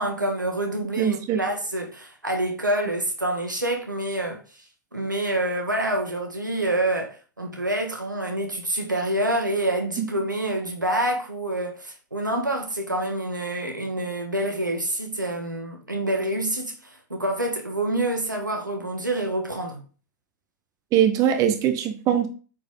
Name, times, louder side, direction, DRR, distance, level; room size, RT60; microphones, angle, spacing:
voice 1, 0.0-4.4 4.9-19.8, right 1 dB, 90° right, 1.9 m, -27 dB
voice 2, 1.0-1.4 10.0-10.1 20.9-22.3, right 9 dB, 35° right, 1.1 m, -21 dB
8.6 x 5.0 x 3.9 m
figure-of-eight pair, 100°, 10 cm